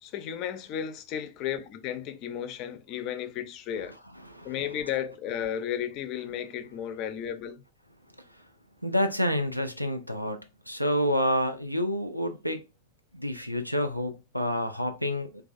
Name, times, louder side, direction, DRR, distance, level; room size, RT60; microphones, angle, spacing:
voice 1, 0.0-3.9 4.4-7.6, left 9 dB, 40° left, 0.4 m, -34 dB
voice 2, 4.2-4.6 8.8-12.6 13.1-15.4, equal, 90° right, 0.3 m, -28 dB
3.1 x 2.3 x 2.4 m
figure-of-eight pair, 90°, 0 cm